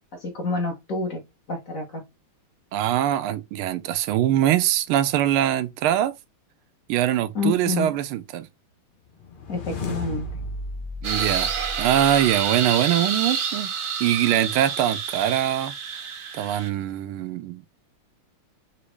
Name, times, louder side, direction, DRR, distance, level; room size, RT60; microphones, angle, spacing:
voice 1, 0.2-1.2 1.5-2.0 7.3-7.9 9.5-10.3, left 3 dB, 45° left, 1.3 m, -28 dB
voice 2, 2.7-6.1 6.9-8.5 11.0-11.5 11.8-13.7 14.0-15.7 16.3-17.7, right 12 dB, 85° right, 1.5 m, -23 dB
sound 1, 9.2-12.5, left 1 dB, 90° left, 0.4 m, -34 dB
sound 2, 11.0-16.7, right 6 dB, 60° right, 0.8 m, -28 dB
5.1 x 2.8 x 3.2 m
omnidirectional pair, 2.3 m